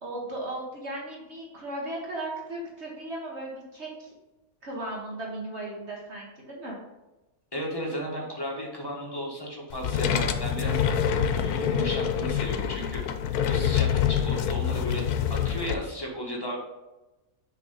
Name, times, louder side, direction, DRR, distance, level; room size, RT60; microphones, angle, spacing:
voice 1, 0.0-4.1 4.6-6.8, right 1 dB, 50° right, -2 dB, 1.4 m, -36 dB
voice 2, 7.5-11.0 11.3-13.0 13.4-16.6, equal, 15° left, -2 dB, 1.4 m, -34 dB
sound 1, 9.7-15.7, left 8 dB, 85° left, 1.1 m, -26 dB
6.5 x 3.7 x 5.4 m, 1.0 s
omnidirectional pair, 1.6 m